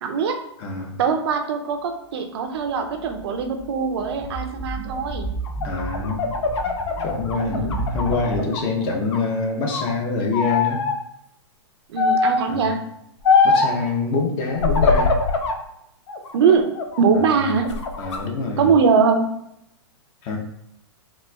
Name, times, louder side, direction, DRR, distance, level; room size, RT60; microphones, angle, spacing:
voice 1, 0.0-0.4 1.0-5.3 7.3-7.8 11.9-12.8 16.3-16.7 17.0-17.7 18.6-19.3, right 5 dB, 65° right, 5 dB, 0.5 m, -21 dB
voice 2, 0.6-1.0 5.6-6.4 7.0-10.8 12.5-12.7 13.4-15.1 17.1-17.4 18.0-18.7 20.2-20.4, left 4 dB, 35° left, 1 dB, 0.6 m, -25 dB
sound 1, 2.6-8.4, right 2 dB, 10° left, 0.9 m, -33 dB
sound 2, 5.4-8.7 9.0-9.9 10.3-11.0 12.0-12.5 13.2-13.8 14.5-15.6 16.1-17.0 17.5-18.2, left 4 dB, 85° left, 0.5 m, -22 dB
4.1 x 2.4 x 2.2 m, 0.78 s
hypercardioid pair, 130°, 15 cm